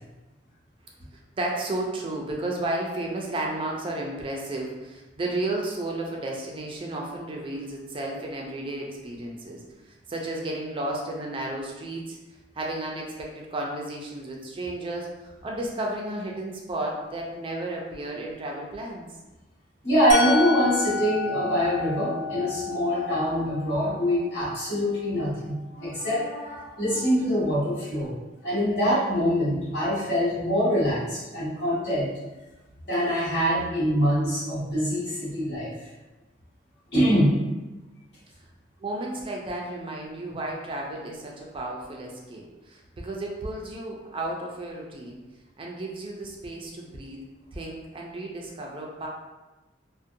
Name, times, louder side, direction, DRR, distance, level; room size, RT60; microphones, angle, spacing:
voice 1, 1.4-9.6 9.9-12.2 12.6-19.1 38.8-45.2 45.6-47.2 47.5-49.1, right 1 dB, 30° right, -1 dB, 0.4 m, -33 dB
voice 2, 19.8-28.1 28.4-32.1 32.9-35.7 36.9-37.4, equal, 70° left, -10 dB, 1.4 m, -24 dB
Musical instrument, 20.1-26.0, left 4 dB, 50° left, 0.7 m, -33 dB
2.6 x 2.1 x 2.5 m, 1.1 s
head